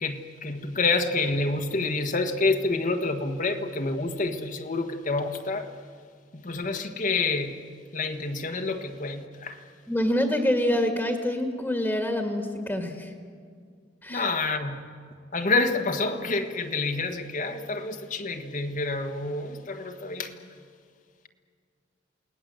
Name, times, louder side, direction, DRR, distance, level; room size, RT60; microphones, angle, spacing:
voice 1, 0.0-5.7 6.3-7.6 7.9-9.6 14.1-14.8 15.3-20.5, left 3 dB, 45° left, 6 dB, 1.5 m, -28 dB
voice 2, 9.9-13.1 14.0-14.3, left 1 dB, 5° left, 4 dB, 1.9 m, -26 dB
29.0 x 19.0 x 7.7 m, 2.1 s
head